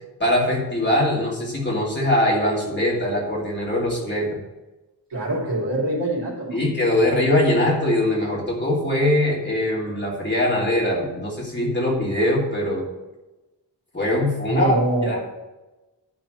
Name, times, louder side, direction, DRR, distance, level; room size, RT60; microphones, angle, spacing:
voice 1, 0.2-4.4 6.5-12.8 13.9-14.7 15.0-15.2, left 1 dB, 25° left, -4 dB, 2.9 m, -22 dB
voice 2, 5.1-6.6 14.5-15.1, right 1 dB, 75° right, -4 dB, 3.4 m, -24 dB
11.0 x 4.3 x 7.8 m, 1.1 s
wide cardioid pair, 115°, 43 cm